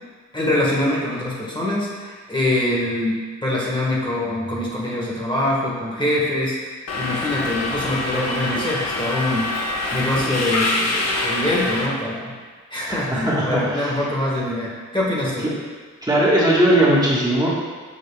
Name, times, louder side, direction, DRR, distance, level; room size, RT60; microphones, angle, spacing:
voice 1, 0.3-9.6 9.9-12.3 12.7-15.5, left 1 dB, 15° left, -5 dB, 1.4 m, -24 dB
Subway metro underground, 6.9-11.9, left 2 dB, 55° left, 1.0 m, -25 dB
voice 2, 12.8-13.9 16.0-17.5, right 1 dB, 15° right, -7 dB, 1.4 m, -18 dB
6.8 x 6.3 x 2.3 m, 1.4 s
cardioid pair, 70°, 31 cm